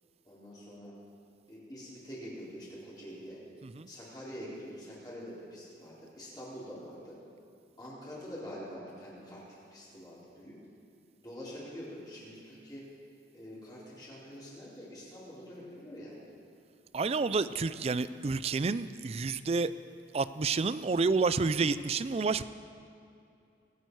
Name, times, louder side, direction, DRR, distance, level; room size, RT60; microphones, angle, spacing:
voice 1, 0.2-0.9 1.5-3.4 3.9-7.2 7.8-10.6 11.2-12.8 13.3-16.2, equal, 20° left, -8 dB, 4.0 m, -45 dB
voice 2, 16.9-19.7 20.1-22.4, right 4 dB, 35° right, 15 dB, 0.3 m, -29 dB
25.5 x 8.9 x 4.7 m, 2.6 s
head